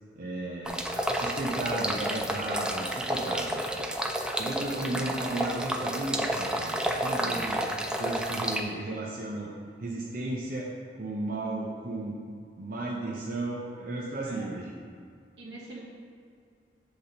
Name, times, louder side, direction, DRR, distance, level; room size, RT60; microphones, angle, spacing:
voice 1, 0.2-0.8 1.1-4.1 4.3-7.6 8.0-9.5 9.8-10.7 10.9-12.2 12.6-14.7, right 2 dB, 50° right, -3 dB, 0.6 m, -34 dB
sound 1, 0.7-8.6, right 1 dB, 5° right, 0.3 m, -30 dB
voice 2, 7.2-7.7 14.2-14.5 15.4-15.8, right 1 dB, 80° right, -3 dB, 1.5 m, -45 dB
7.9 x 3.5 x 5.4 m, 2.2 s
head